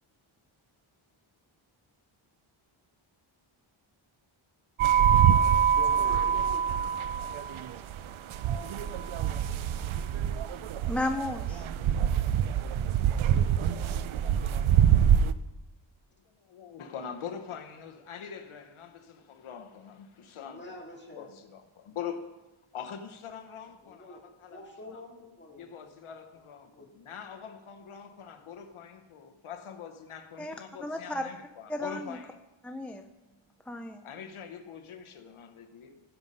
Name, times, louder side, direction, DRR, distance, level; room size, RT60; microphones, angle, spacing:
sound 1, 4.8-15.3, right 9 dB, 75° right, 0.6 m, -25 dB
voice 1, 5.7-6.9 20.5-21.3 23.8-24.2 24.5-25.9 26.7-26.9, left 2 dB, 20° left, 2.0 m, -46 dB
voice 2, 10.9-11.7 30.4-30.5 30.8-31.3 31.7-32.2 32.6-33.0 33.7-34.0, left 1 dB, 5° left, 0.4 m, -33 dB
voice 3, 16.3-20.7 21.2-22.3 22.7-25.0 25.6-32.4 34.0-36.0, left 7 dB, 80° left, 1.0 m, -43 dB
16.0 x 5.5 x 5.4 m
wide cardioid pair, 145°, 49 cm